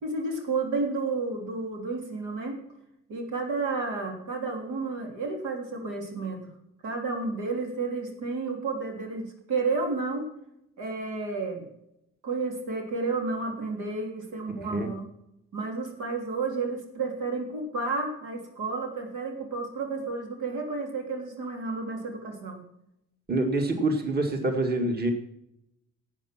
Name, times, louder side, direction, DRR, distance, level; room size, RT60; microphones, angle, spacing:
voice 1, 0.0-2.6 3.1-6.5 6.8-10.2 10.8-11.7 12.2-15.0 15.5-22.6, right 3 dB, 85° right, 2 dB, 3.2 m, -31 dB
voice 2, 23.3-25.1, right 2 dB, 30° right, 4 dB, 1.9 m, -26 dB
12.0 x 8.5 x 5.9 m, 0.83 s
cardioid pair, 90°, 30 cm